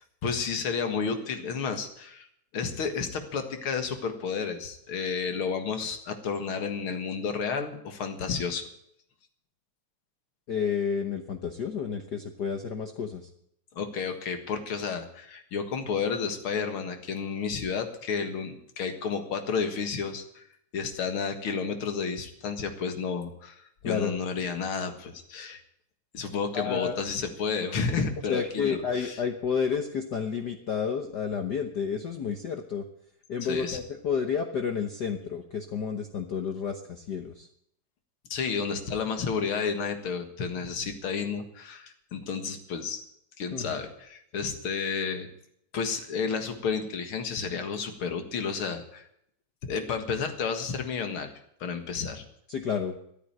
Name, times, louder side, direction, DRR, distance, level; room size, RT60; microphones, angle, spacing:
voice 1, 0.2-2.3 2.5-8.6 13.8-20.4 20.7-25.6 26.1-29.2 33.4-33.8 38.3-43.0 43.4-45.3 45.7-49.0 49.7-51.3 51.6-52.2, left 5 dB, 50° left, 7 dB, 2.2 m, -31 dB
voice 2, 10.5-13.3 23.8-24.2 26.5-27.0 28.3-32.8 33.3-37.5 43.5-43.8 52.5-52.9, left 6 dB, 90° left, 6 dB, 0.9 m, -30 dB
14.0 x 9.1 x 9.0 m, 0.72 s
omnidirectional pair, 3.4 m